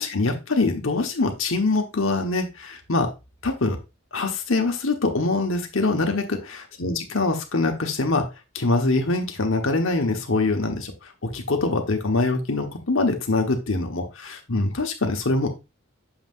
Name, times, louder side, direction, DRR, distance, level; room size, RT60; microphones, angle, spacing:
voice 1, 0.0-3.1 3.4-3.8 4.1-6.4 6.8-8.3 8.5-10.9 11.2-15.6, left 3 dB, 65° left, 4 dB, 1.3 m, -24 dB
7.0 x 5.6 x 2.5 m, 0.25 s
head